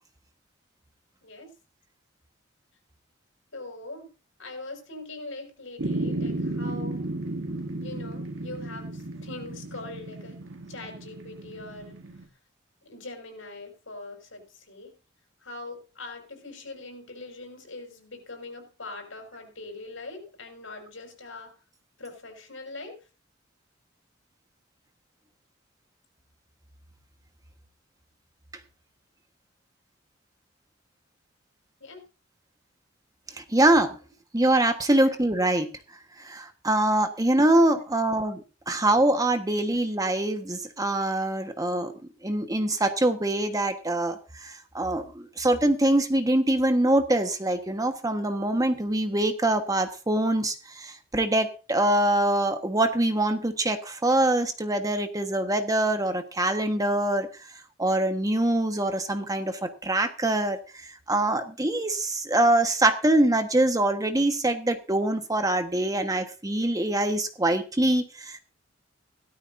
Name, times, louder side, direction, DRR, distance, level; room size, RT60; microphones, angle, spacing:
voice 1, 3.5-4.1 4.4-7.0 7.8-10.4 10.7-12.0 12.8-14.9 15.4-21.5 22.0-23.0 31.8-32.0 35.0-35.2 37.9-38.2, left 2 dB, 85° left, 4 dB, 5.5 m, -42 dB
sound 1, 5.8-12.3, right 2 dB, 90° right, 1.7 m, -34 dB
voice 2, 33.4-34.0 34.3-35.7 36.2-38.4 38.7-41.9 42.2-57.3 57.8-60.6 61.1-68.4, right 1 dB, 20° right, 7 dB, 1.4 m, -24 dB
16.5 x 13.0 x 2.7 m, 0.32 s
head